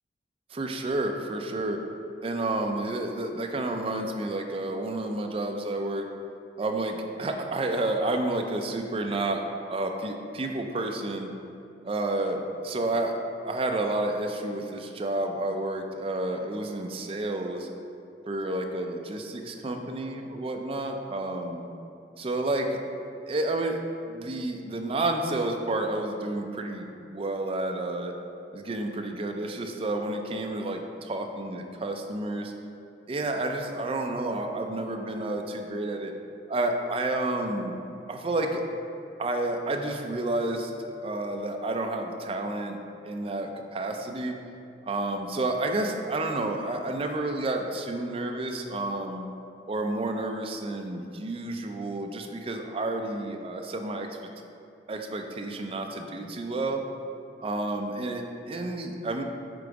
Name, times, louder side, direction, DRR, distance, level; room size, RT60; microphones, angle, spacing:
voice 1, 0.5-1.8 2.2-6.1 6.6-9.4 9.7-11.3 11.8-13.1 13.4-17.7 18.3-21.7 22.2-22.8 23.3-23.8 24.1-28.1 28.5-32.5 33.1-36.1 36.5-37.8 38.1-38.6 39.2-40.7 41.0-42.8 43.0-44.3 44.9-49.3 49.7-54.1 54.9-56.8 57.4-59.2, right 2 dB, 30° right, 4 dB, 0.4 m, -30 dB
5.2 x 3.8 x 4.7 m, 2.6 s
head